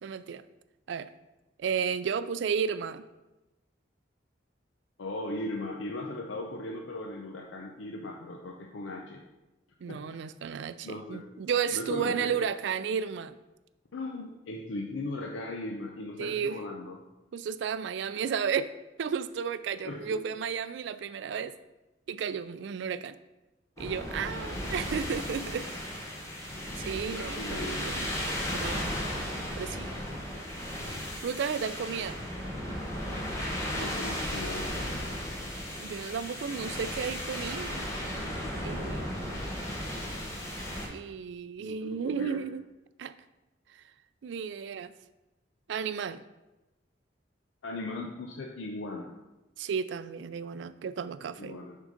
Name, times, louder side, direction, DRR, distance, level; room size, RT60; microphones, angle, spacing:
voice 1, 0.0-0.4 0.9-1.1 1.6-3.0 9.8-13.4 16.2-16.6 17.3-18.7 19.0-21.5 22.1-23.2 23.8-25.7 26.8-28.1 28.5-28.9 29.6-29.9 31.2-32.2 35.8-38.3 38.6-39.2 40.9-42.6 43.0-43.1 44.2-44.9 45.7-46.2 49.6-51.6, right 6 dB, 70° right, 14 dB, 0.3 m, -33 dB
voice 2, 5.0-9.2 9.9-10.0 10.8-11.2 11.7-12.3 13.9-17.0 19.8-20.2 26.9-27.8 33.7-34.8 41.6-42.4 47.6-49.1 51.4-51.8, left 2 dB, 85° left, 2 dB, 0.6 m, -38 dB
sound 1, 23.8-40.9, equal, 15° left, 1.0 m, -35 dB
6.4 x 3.7 x 5.0 m, 1.0 s
head